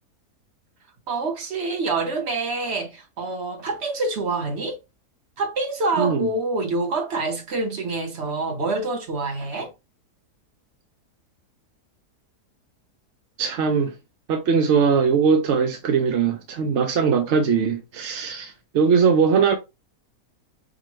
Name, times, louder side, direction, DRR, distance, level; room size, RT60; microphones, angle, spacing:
voice 1, 1.1-4.8 5.4-9.7, right 3 dB, 50° right, 1.0 m, -26 dB
voice 2, 6.0-6.3 13.4-13.9 14.3-19.5, right 6 dB, 70° right, 0.7 m, -20 dB
5.9 x 2.1 x 3.1 m
omnidirectional pair, 1.7 m